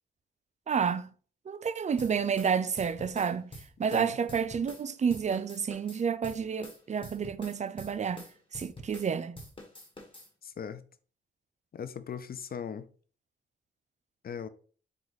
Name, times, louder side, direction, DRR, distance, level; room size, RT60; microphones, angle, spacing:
voice 1, 0.7-1.1 1.5-3.5 3.8-9.4, right 6 dB, 40° right, 0.4 m, -30 dB
sound 1, 2.0-4.9 5.1-9.1 9.4-10.3, left 1 dB, 25° left, 1.5 m, -46 dB
voice 2, 10.4-10.8 11.7-12.9 14.2-14.5, left 7 dB, 50° left, 0.5 m, -39 dB
4.4 x 2.4 x 4.0 m
cardioid pair, 55°, 19 cm